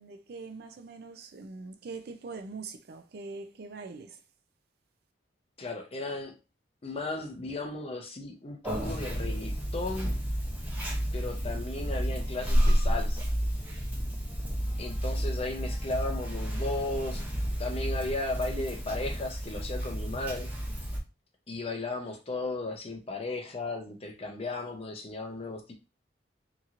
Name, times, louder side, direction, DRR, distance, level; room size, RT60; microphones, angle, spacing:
voice 1, 0.0-4.2, right 4 dB, 60° right, 0.4 m, -43 dB
voice 2, 5.6-6.4 6.8-10.2 11.1-13.3 14.8-17.2 17.5-20.5 21.5-25.7, left 2 dB, 35° left, 0.6 m, -35 dB
Conversation, 8.6-21.0, equal, 10° right, 0.9 m, -31 dB
2.9 x 2.8 x 2.4 m
head